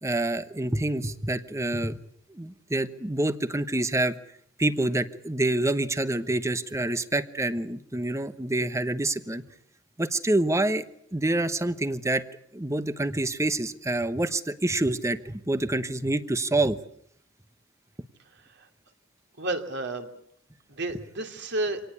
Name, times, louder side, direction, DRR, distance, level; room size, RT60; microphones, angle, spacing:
voice 1, 0.0-2.0 2.3-4.1 4.6-9.4 10.0-10.8 11.1-12.2 12.5-16.8, right 2 dB, 15° right, 12 dB, 1.1 m, -27 dB
voice 2, 18.3-18.7 19.4-20.1 20.7-21.8, right 2 dB, 60° right, 5 dB, 2.7 m, -31 dB
25.5 x 18.5 x 8.4 m, 0.69 s
head